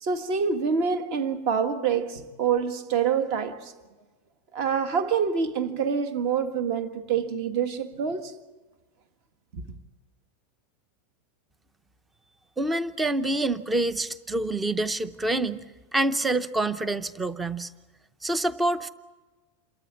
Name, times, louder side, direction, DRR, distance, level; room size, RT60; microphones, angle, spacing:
voice 1, 0.0-3.7 4.5-8.3 9.5-9.6, right 6 dB, 40° right, 1.6 m, -26 dB
voice 2, 12.6-15.6 15.9-17.7 18.2-18.9, right 2 dB, 5° right, 0.7 m, -26 dB
28.0 x 13.5 x 9.7 m
supercardioid pair, 175°, 0 cm